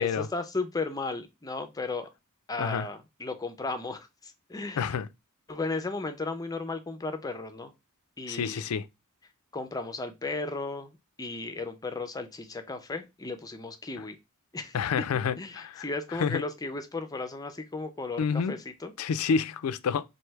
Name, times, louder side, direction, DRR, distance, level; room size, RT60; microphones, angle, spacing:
voice 1, 0.0-2.1 2.5-5.0 5.5-7.7 8.2-8.7 9.5-14.2 14.5-15.1 15.4-18.9, left 3 dB, 15° left, 0.5 m, -35 dB
voice 2, 4.8-5.1 8.3-8.8 14.7-15.9 16.2-16.4 18.2-18.5 19.0-20.0, left 6 dB, 80° left, 0.4 m, -28 dB
3.2 x 2.7 x 4.5 m
head